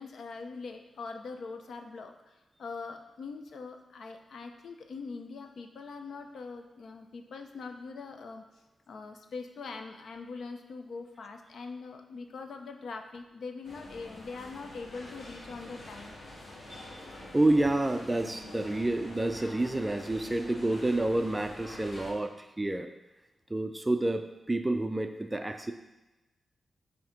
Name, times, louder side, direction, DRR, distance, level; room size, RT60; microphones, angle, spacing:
voice 1, 0.0-8.4 8.9-16.2, left 4 dB, 70° left, 5 dB, 0.6 m, -42 dB
sound 1, 13.6-22.1, left 1 dB, 45° left, 1.7 m, -46 dB
voice 2, 17.3-22.9 23.5-25.7, right 2 dB, 10° right, 7 dB, 0.3 m, -29 dB
7.6 x 2.8 x 5.7 m, 1.0 s
wide cardioid pair, 170°, 0 cm